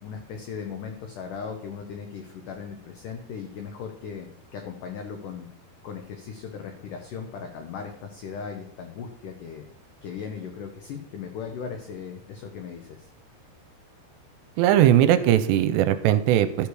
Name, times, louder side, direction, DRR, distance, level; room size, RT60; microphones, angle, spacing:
voice 1, 0.0-5.5 5.8-9.6 10.0-13.1, left 6 dB, 85° left, 4 dB, 1.8 m, -38 dB
voice 2, 14.6-16.7, right 11 dB, 85° right, 11 dB, 2.7 m, -19 dB
13.0 x 7.0 x 4.8 m, 0.71 s
omnidirectional pair, 5.1 m